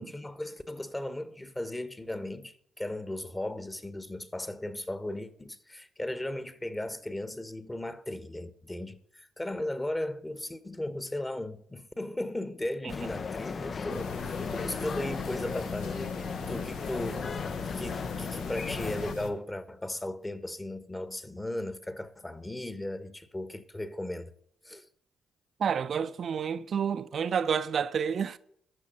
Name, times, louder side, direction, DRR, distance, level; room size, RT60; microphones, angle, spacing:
voice 1, 0.0-17.2 17.6-24.3 24.6-24.9, left 1 dB, 20° left, 1.2 m, -36 dB
sound 1, 12.9-19.1, left 5 dB, 45° left, 0.4 m, -36 dB
sound 2, 13.9-19.3, left 4 dB, 85° left, 1.0 m, -41 dB
voice 2, 25.6-28.4, right 7 dB, 55° right, 0.5 m, -29 dB
13.0 x 6.0 x 5.5 m
hypercardioid pair, 50°, 0 cm